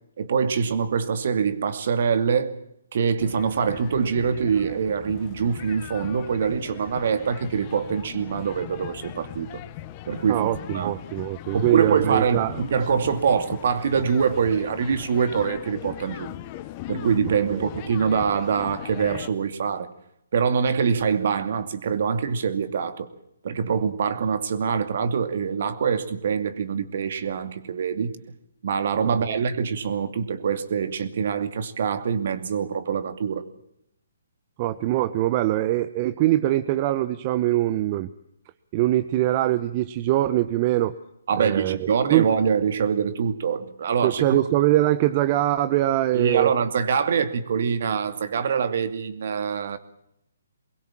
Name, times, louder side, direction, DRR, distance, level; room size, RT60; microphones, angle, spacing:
voice 1, 0.2-2.6 2.9-9.6 10.0-11.0 11.5-16.4 16.9-19.9 20.3-23.1 23.4-28.1 28.6-33.5 41.3-44.4 46.1-49.8, right 6 dB, 55° right, 2.6 m, -24 dB
sound 1, 3.2-19.3, left 14 dB, 30° left, 1.3 m, -39 dB
voice 2, 10.3-12.6 17.5-17.7 29.1-29.4 34.6-38.1 38.7-40.9 41.4-42.3 44.0-46.5, right 15 dB, 35° right, 1.0 m, -23 dB
23.5 x 21.5 x 7.6 m
figure-of-eight pair, 135°, 0 cm